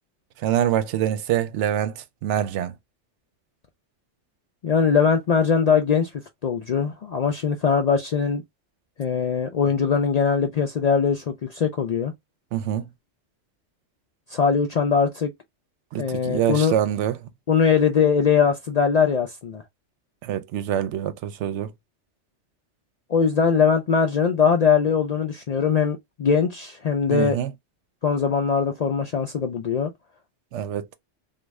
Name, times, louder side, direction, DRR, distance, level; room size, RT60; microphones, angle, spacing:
voice 1, 0.4-1.9 2.2-2.7 12.5-12.9 15.9-17.2 20.2-21.7 27.1-27.5 30.5-30.9, right 10 dB, 80° right, 0.9 m, -25 dB
voice 2, 4.6-6.1 6.4-8.4 9.0-12.1 14.3-15.3 16.0-16.7 17.5-19.6 23.1-27.4 28.0-29.9, left 6 dB, 65° left, 0.4 m, -21 dB
3.1 x 2.3 x 3.4 m
omnidirectional pair, 1.2 m